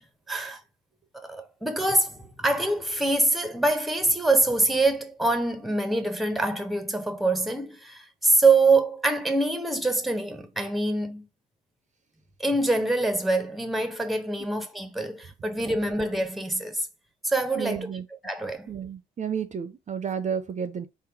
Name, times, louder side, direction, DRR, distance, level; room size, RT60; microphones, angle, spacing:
voice 1, 0.3-0.6 1.1-11.3 12.4-16.9 17.2-17.9 18.2-18.7, right 2 dB, ahead, 0.7 m, -25 dB
voice 2, 17.6-18.1 18.7-20.9, right 7 dB, 35° right, 0.5 m, -31 dB
3.8 x 2.1 x 4.4 m
cardioid pair, 90°, 20 cm